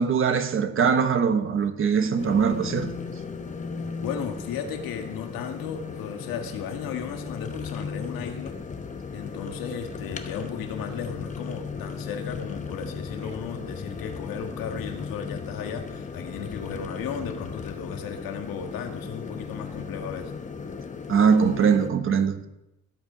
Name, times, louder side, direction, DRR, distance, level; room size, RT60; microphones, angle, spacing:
voice 1, 0.0-2.9 21.1-22.5, right 6 dB, 40° right, 1.2 m, -22 dB
sound 1, 2.2-21.9, left 5 dB, 20° left, 0.8 m, -36 dB
voice 2, 4.0-8.6 9.1-20.3, left 7 dB, 85° left, 1.8 m, -35 dB
17.0 x 8.2 x 5.1 m
cardioid pair, 170°, 34 cm